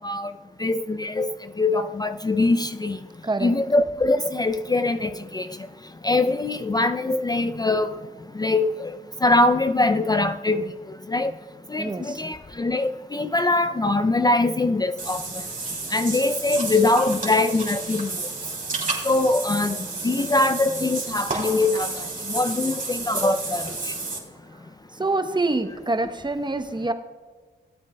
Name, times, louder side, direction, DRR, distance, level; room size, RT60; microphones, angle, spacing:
voice 1, 0.6-1.3 1.6-3.0 3.4-5.5 6.0-7.9 8.4-8.9 9.2-10.6 11.1-11.3 11.7-15.2 15.9-18.1 19.1-21.9 22.3-23.6, left 2 dB, 20° left, 0.4 m, -22 dB
voice 2, 11.8-12.2 25.0-26.9, right 2 dB, 25° right, 0.8 m, -26 dB
Water / Bathtub (filling or washing), 15.0-24.2, right 3 dB, 45° right, 3.1 m, -31 dB
17.0 x 8.3 x 2.2 m
cardioid pair, 60°, 19 cm